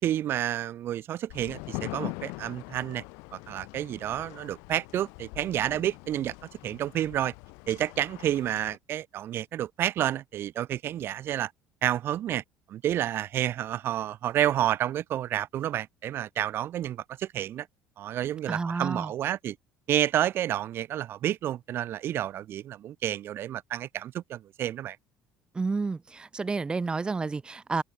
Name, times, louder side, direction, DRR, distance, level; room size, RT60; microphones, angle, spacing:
voice 1, 0.0-3.0 3.3-6.3 6.6-7.3 7.7-11.5 11.8-12.4 12.7-17.7 18.0-19.6 19.9-25.0, right 12 dB, 50° right, 4.4 m, -30 dB
sound 1, 1.3-8.8, left 31 dB, 85° left, 4.7 m, -42 dB
voice 2, 18.5-19.1 25.5-27.8, right 4 dB, 20° right, 3.3 m, -30 dB
cardioid pair, 130°, 5 cm